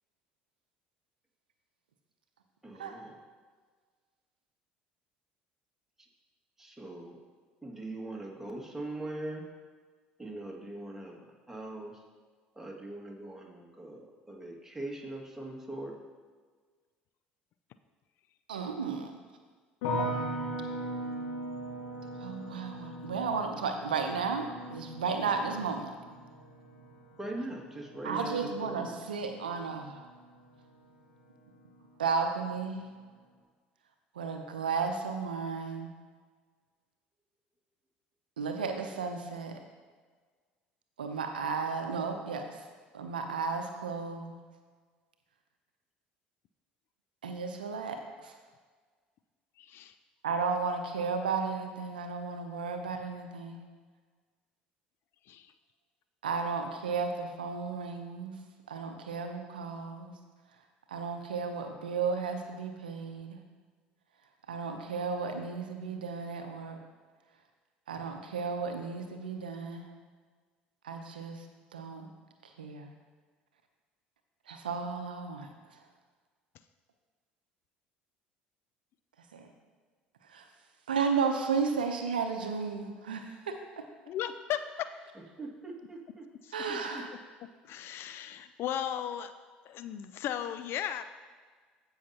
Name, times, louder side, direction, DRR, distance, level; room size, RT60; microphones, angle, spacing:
voice 1, 2.6-3.2 6.6-7.2 7.6-9.4 10.2-11.1 11.5-12.0 12.5-15.9 27.2-29.0 85.4-86.2 86.7-87.0, right 2 dB, 10° right, -1 dB, 2.0 m, -41 dB
voice 2, 18.5-19.1 22.2-25.9 28.0-30.0 32.0-32.8 34.2-35.9 38.4-39.5 41.0-42.6 42.9-44.4 47.2-48.3 50.2-53.7 56.2-58.3 58.7-60.1 60.9-63.4 64.5-66.8 67.9-69.8 70.8-71.4 71.7-72.1 72.6-72.9 74.5-75.5 79.3-79.5 80.3-80.4 80.9-83.6 86.5-87.1, right 5 dB, 85° right, 5 dB, 0.7 m, -34 dB
sound 1, 19.8-30.9 31.2-31.9, equal, 70° left, 1.6 m, -39 dB
voice 3, 49.6-49.9 55.3-55.5 84.1-84.9 86.4-86.5 87.7-89.3 89.7-91.0, left 10 dB, 55° left, 11 dB, 0.4 m, -36 dB
15.5 x 5.7 x 2.9 m, 1.5 s
hypercardioid pair, 60°, 5 cm